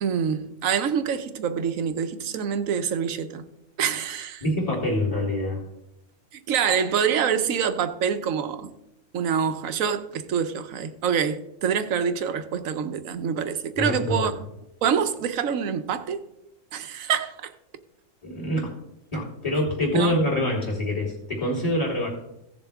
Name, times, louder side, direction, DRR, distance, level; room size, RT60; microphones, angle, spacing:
voice 1, 0.0-3.4 3.8-4.4 6.3-8.7 9.1-14.3 14.8-16.2 16.7-17.5 19.9-20.1, right 7 dB, 75° right, 10 dB, 1.2 m, -26 dB
voice 2, 4.4-5.6 13.8-14.3 18.2-18.7 19.1-22.1, left 1 dB, 25° left, -2 dB, 3.2 m, -25 dB
16.0 x 6.9 x 3.5 m, 0.86 s
omnidirectional pair, 1.4 m